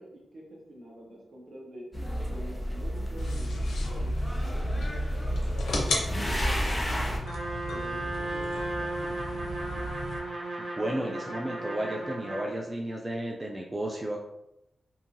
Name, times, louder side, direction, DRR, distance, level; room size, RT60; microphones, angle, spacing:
voice 1, 0.0-1.9 2.3-7.2 7.6-9.9, right 1 dB, 65° right, -2 dB, 0.9 m, -47 dB
sound 1, 1.9-7.2, equal, 15° left, 0.7 m, -31 dB
sound 2, 3.2-10.2, left 1 dB, 90° left, 0.5 m, -36 dB
Trumpet, 7.2-12.5, right 2 dB, 90° right, 0.6 m, -35 dB
voice 2, 10.6-14.2, right 1 dB, 25° right, 0 dB, 0.4 m, -33 dB
2.7 x 2.4 x 2.7 m, 0.87 s
cardioid pair, 50°, 0 cm